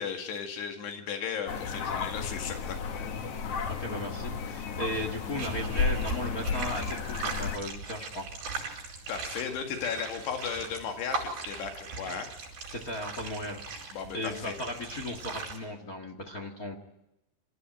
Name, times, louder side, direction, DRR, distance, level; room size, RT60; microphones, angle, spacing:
voice 1, 0.0-2.8 9.1-12.3 13.9-14.6, left 7 dB, 85° left, 4 dB, 4.1 m, -35 dB
sound 1, 1.5-7.6, left 5 dB, 55° left, 1.8 m, -33 dB
voice 2, 3.6-8.3 12.7-16.8, left 1 dB, 40° left, 4 dB, 1.3 m, -36 dB
sound 2, 4.7-15.6, right 4 dB, 70° right, 6.6 m, -39 dB
26.5 x 14.0 x 9.2 m, 0.90 s
omnidirectional pair, 4.6 m